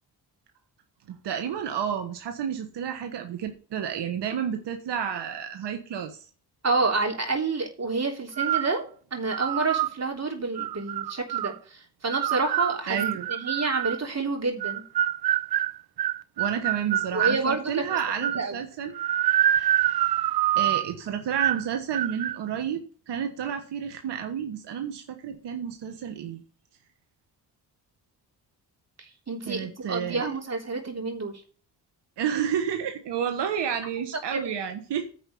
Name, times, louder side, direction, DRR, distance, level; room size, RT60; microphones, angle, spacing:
voice 1, 1.1-6.3 12.9-13.3 16.4-18.9 20.5-26.4 29.5-30.3 32.2-35.1, right 8 dB, 90° right, 6 dB, 1.3 m, -30 dB
voice 2, 6.6-8.8 9.1-13.0 13.3-14.8 17.1-18.6 29.0-31.3 34.3-34.4, right 3 dB, 40° right, 2 dB, 3.4 m, -29 dB
sound 1, 8.4-8.8 9.3-9.9 10.6-11.5 12.1-14.0 14.6-17.4 17.9-18.5 18.9-20.9 21.4-21.7 21.9-22.4, right 12 dB, 65° right, 0.5 m, -26 dB
9.9 x 5.1 x 7.0 m, 0.41 s
cardioid pair, 90°, 40 cm